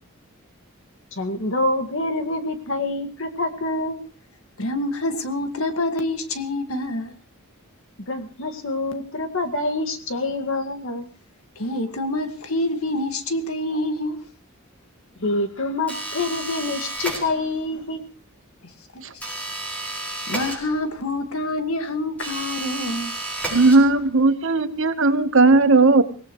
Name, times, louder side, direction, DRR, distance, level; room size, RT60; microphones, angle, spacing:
voice 1, 1.1-4.0 8.1-11.1 15.2-18.0, left 2 dB, 65° left, 2.0 m, -26 dB
voice 2, 4.6-7.1 11.6-14.2 18.9-19.0 20.3-23.1, left 1 dB, 90° left, 1.9 m, -26 dB
sound 1, 15.9-17.7 19.2-21.1 22.2-24.2, right 2 dB, 5° left, 5.6 m, -32 dB
voice 3, 23.5-26.0, right 3 dB, 65° right, 1.2 m, -16 dB
24.0 x 18.0 x 3.1 m
head